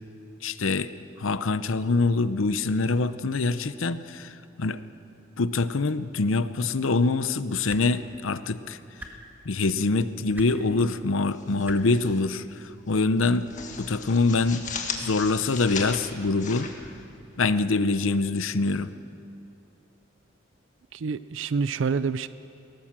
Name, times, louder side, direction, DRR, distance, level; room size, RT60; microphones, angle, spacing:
voice 1, 0.4-0.9 1.2-4.8 5.4-8.8 9.4-13.5 13.8-14.7 15.0-16.7 17.4-18.9, left 3 dB, 80° left, 13 dB, 0.7 m, -25 dB
sound 1, 7.7-7.8 9.0-9.1 10.3-10.5 11.6-11.8 13.0-13.1, right 1 dB, 10° right, 1.6 m, -41 dB
sound 2, 11.3-12.2 12.5-12.7 13.1-17.6, left 5 dB, 40° left, 1.7 m, -37 dB
voice 2, 20.9-22.3, right 5 dB, 70° right, 15 dB, 0.4 m, -27 dB
19.5 x 17.5 x 7.5 m, 2.6 s
head